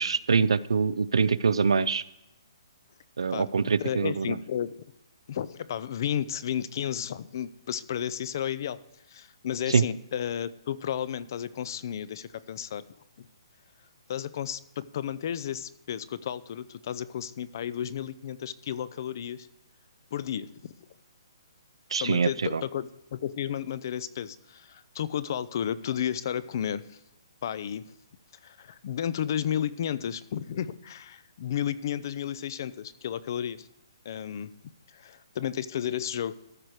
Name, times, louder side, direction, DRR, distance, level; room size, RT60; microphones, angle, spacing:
voice 1, 0.0-2.0 3.2-4.4 9.7-9.8 21.9-22.6, right 5 dB, 90° right, 17 dB, 0.4 m, -24 dB
voice 2, 3.8-4.8 5.3-8.8 9.1-12.8 13.2-13.3 14.1-19.5 20.1-20.7 22.0-27.0 27.4-27.9 28.4-33.7 34.1-34.5 34.9-36.3, left 9 dB, 45° left, 17 dB, 0.4 m, -33 dB
13.5 x 4.6 x 4.9 m, 0.88 s
hypercardioid pair, 165°, 3 cm